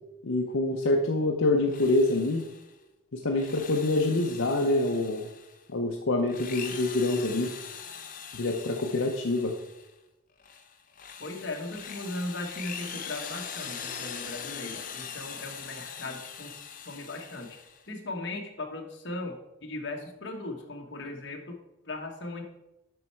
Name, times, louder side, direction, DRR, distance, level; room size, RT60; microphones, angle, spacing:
voice 1, 0.2-2.4 3.1-5.3 5.7-7.5 8.3-9.5, left 2 dB, 75° left, 2 dB, 0.7 m, -26 dB
Drill, 1.6-2.7 3.2-5.6 6.2-9.9 10.4-17.9, left 7 dB, 40° left, 0.7 m, -42 dB
voice 2, 11.2-16.5 16.8-17.5 17.9-21.6 21.9-22.4, left 2 dB, 55° left, 2 dB, 1.3 m, -38 dB
7.9 x 5.5 x 4.5 m, 0.94 s
head